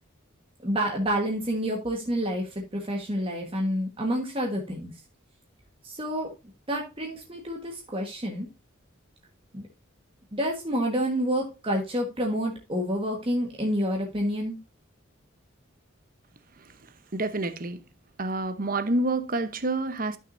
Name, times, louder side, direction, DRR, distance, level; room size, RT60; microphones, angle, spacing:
voice 1, 0.6-4.9 5.8-6.3 6.7-8.5 9.5-9.7 10.3-14.6, equal, 25° right, 1.4 m, -28 dB
voice 2, 17.1-17.8 18.2-20.2, right 2 dB, 40° right, 0.9 m, -28 dB
12.5 x 6.2 x 2.6 m
head